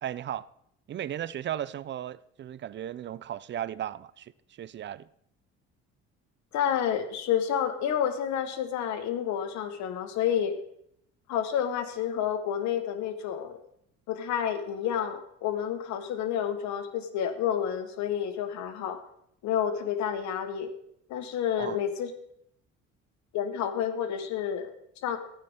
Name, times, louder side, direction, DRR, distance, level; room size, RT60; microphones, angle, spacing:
voice 1, 0.0-0.5 0.9-5.1 21.6-21.8, right 11 dB, 40° right, 0.5 m, -36 dB
voice 2, 6.5-10.5 11.3-13.6 14.1-19.0 19.4-20.7 21.1-22.1 23.3-25.2, left 9 dB, 75° left, 1.4 m, -29 dB
14.5 x 9.3 x 3.7 m
cardioid pair, 90°, 29 cm